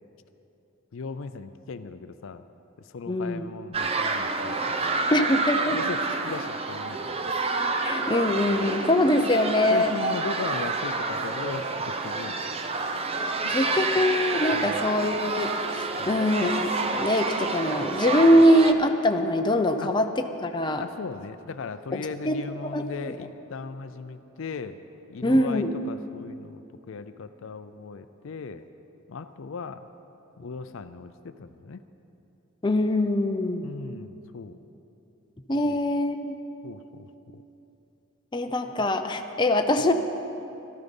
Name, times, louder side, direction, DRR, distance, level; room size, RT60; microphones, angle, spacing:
voice 1, 0.9-2.4 2.8-5.1 5.7-7.0 8.5-8.6 9.6-12.3 13.4-13.5 14.5-14.8 16.0-16.2 19.8-19.9 20.8-24.8 25.1-28.6 29.1-29.9 30.4-31.8 33.6-34.6 35.7-35.8 36.6-37.4, left 4 dB, 65° left, 11 dB, 0.5 m, -38 dB
voice 2, 3.1-3.5 5.1-5.8 7.8-9.9 13.2-20.8 21.9-22.4 22.7-22.9 25.2-25.7 32.6-33.7 35.5-36.4 38.3-39.9, left 1 dB, 20° left, 6 dB, 0.6 m, -23 dB
sound 1, 3.7-18.7, right 3 dB, 30° right, 0.7 m, -29 dB
13.5 x 13.0 x 5.3 m, 2.9 s
head